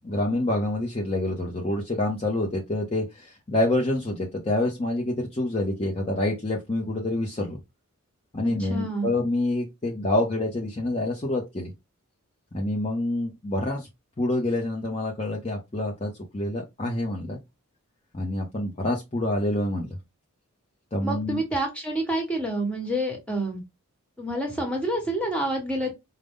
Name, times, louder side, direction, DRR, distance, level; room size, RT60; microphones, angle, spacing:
voice 1, 0.0-7.6 8.3-11.7 12.5-13.9 14.2-17.4 18.1-20.0 20.9-21.4, left 1 dB, 25° left, -1 dB, 0.6 m, -27 dB
voice 2, 8.4-9.1 21.0-23.6 24.2-25.9, right 1 dB, 5° left, 1 dB, 1.2 m, -28 dB
5.0 x 2.2 x 3.5 m, 0.22 s
head